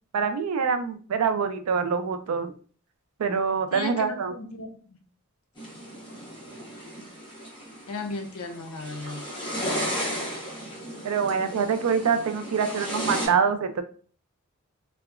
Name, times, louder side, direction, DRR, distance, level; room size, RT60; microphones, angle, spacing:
voice 1, 0.1-2.5 3.2-4.3 11.0-13.8, right 6 dB, 80° right, 8 dB, 0.4 m, -25 dB
voice 2, 3.7-5.0 7.9-9.2, left 2 dB, 80° left, 5 dB, 0.6 m, -35 dB
sound 1, 5.6-13.3, equal, 20° left, 0.9 m, -34 dB
2.8 x 2.1 x 2.3 m, 0.41 s
head